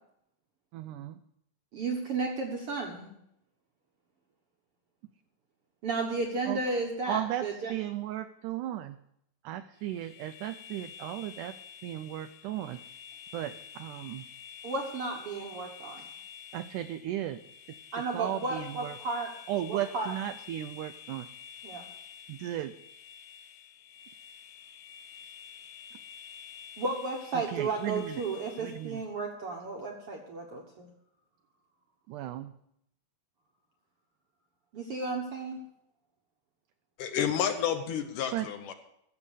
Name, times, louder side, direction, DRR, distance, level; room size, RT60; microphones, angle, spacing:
voice 1, 0.7-1.2 6.5-6.6 7.1-9.0 9.4-12.8 13.3-14.3 16.0-16.1 16.5-17.4 17.7-19.0 19.5-21.3 22.3-22.7 25.9-26.0 27.3-28.2 28.6-29.0 32.1-32.5 38.3-38.5, right 13 dB, 85° right, 10 dB, 1.8 m, -36 dB
voice 2, 1.7-3.1 5.8-7.7 14.6-16.0 17.9-19.3 19.7-20.1 21.6-21.9 26.8-30.9 34.7-35.6, right 3 dB, 60° right, 1 dB, 1.5 m, -33 dB
sound 1, 9.8-29.0, left 7 dB, 90° left, 2.7 m, -49 dB
voice 3, 37.0-38.7, left 9 dB, 70° left, 8 dB, 2.2 m, -30 dB
14.5 x 6.9 x 6.4 m, 0.77 s
omnidirectional pair, 4.2 m